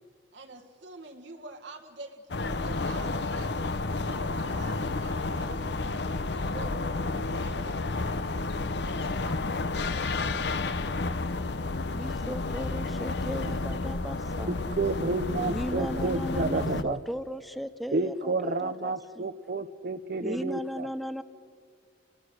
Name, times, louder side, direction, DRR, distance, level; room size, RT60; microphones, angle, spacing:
voice 1, 0.3-3.6 3.8-5.6 6.3-8.1 8.8-10.6, right 3 dB, 70° right, 3 dB, 1.7 m, -47 dB
sound 1, 2.3-16.8, left 3 dB, 65° left, 0.8 m, -31 dB
voice 2, 11.9-14.6 15.4-19.3 20.2-21.2, equal, ahead, 13 dB, 0.6 m, -36 dB
voice 3, 14.5-17.0 17.9-20.9, right 3 dB, 50° right, 9 dB, 0.6 m, -30 dB
30.0 x 21.0 x 6.4 m, 2.2 s
head